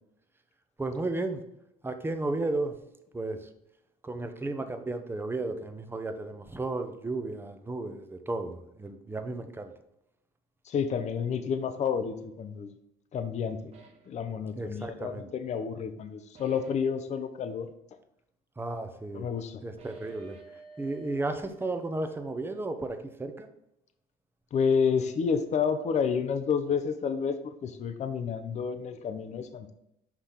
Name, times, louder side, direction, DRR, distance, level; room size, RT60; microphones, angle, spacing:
voice 1, 0.8-1.4 1.8-2.8 3.1-3.5 4.0-9.7 14.6-15.3 18.6-19.3 19.6-20.4 20.8-23.5, right 2 dB, 15° right, 7 dB, 0.7 m, -33 dB
voice 2, 10.7-12.7 13.1-13.7 14.1-17.7 19.1-19.6 24.5-29.7, left 6 dB, 45° left, 9 dB, 0.6 m, -30 dB
sound 1, 13.7-14.2 16.3-17.0 19.8-22.2, right 3 dB, 40° right, 1.3 m, -53 dB
6.0 x 3.4 x 5.6 m, 0.82 s
cardioid pair, 110°, 17 cm